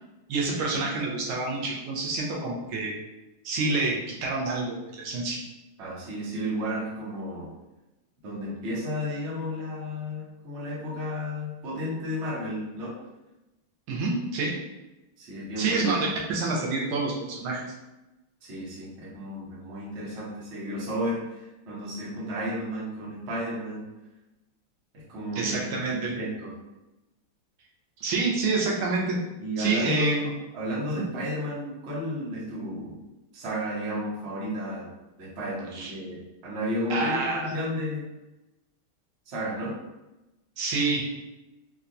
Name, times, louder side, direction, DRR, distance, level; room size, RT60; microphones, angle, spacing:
voice 1, 0.3-2.9 3.5-5.4 13.9-14.6 15.6-17.6 25.4-26.2 28.0-29.2 29.6-30.3 31.0-31.1 35.7-35.9 36.9-37.5 40.6-41.0, right 3 dB, 85° right, -2 dB, 1.6 m, -27 dB
voice 2, 5.8-7.5 8.2-13.0 15.2-15.8 18.4-23.9 24.9-26.5 29.4-33.0 33.3-38.1 39.3-39.8, equal, 45° right, -6 dB, 1.0 m, -33 dB
4.4 x 2.2 x 2.6 m, 1.0 s
omnidirectional pair, 2.2 m